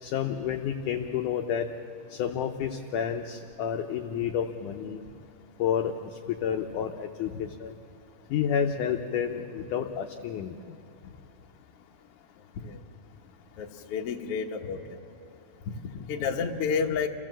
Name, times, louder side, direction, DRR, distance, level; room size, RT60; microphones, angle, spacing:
voice 1, 0.0-1.7 2.1-5.0 5.6-7.3 7.6-7.8 8.3-10.6, left 8 dB, 75° left, 4 dB, 1.9 m, -30 dB
voice 2, 13.6-15.0 15.7-17.1, left 6 dB, 60° left, 2 dB, 1.6 m, -30 dB
28.5 x 16.0 x 7.6 m, 2.8 s
omnidirectional pair, 4.3 m